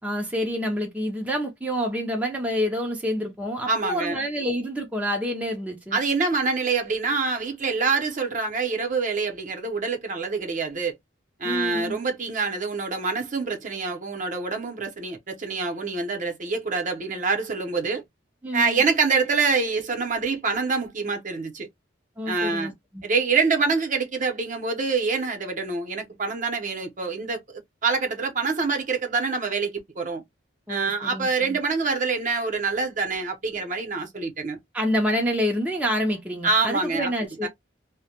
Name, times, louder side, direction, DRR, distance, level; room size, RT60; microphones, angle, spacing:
voice 1, 0.0-6.0 11.4-12.0 18.4-18.8 22.2-23.0 30.7-31.6 34.7-37.5, equal, 10° right, 0.5 m, -28 dB
voice 2, 3.7-4.2 5.9-10.9 11.4-18.0 18.5-21.7 22.3-22.7 23.0-30.2 30.7-34.6 36.4-37.1 37.4-37.5, right 4 dB, 45° right, 0.7 m, -26 dB
2.2 x 2.1 x 2.8 m
head